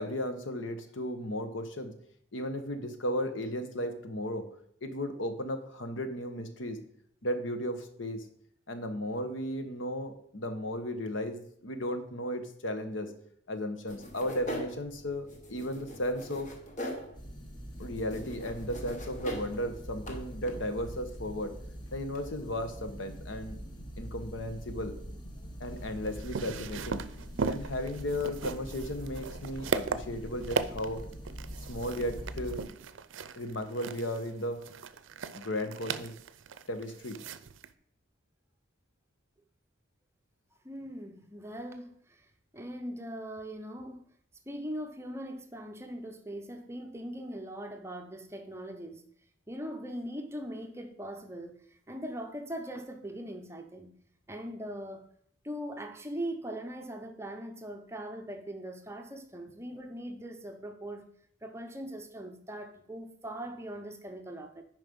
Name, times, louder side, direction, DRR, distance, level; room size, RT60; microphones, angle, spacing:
voice 1, 0.0-1.9 2.3-4.5 4.8-6.8 7.2-8.3 8.7-13.1 13.5-16.5 17.8-21.5 21.9-23.6 24.0-25.0 25.6-27.0 27.5-31.0 31.7-32.7 33.4-34.6 35.3-36.1 36.7-37.2, left 1 dB, 85° left, 1.1 m, -35 dB
sound 1, 13.9-22.3, equal, 40° left, 1.3 m, -43 dB
sound 2, 17.1-32.7, equal, 25° left, 1.0 m, -44 dB
sound 3, 25.7-37.7, right 5 dB, 85° right, 0.5 m, -37 dB
voice 2, 40.6-42.3 42.5-44.0 44.5-49.0 49.5-54.0 54.3-55.1 55.4-61.1 61.4-64.6, right 1 dB, 15° right, 0.7 m, -40 dB
9.4 x 5.1 x 5.4 m
head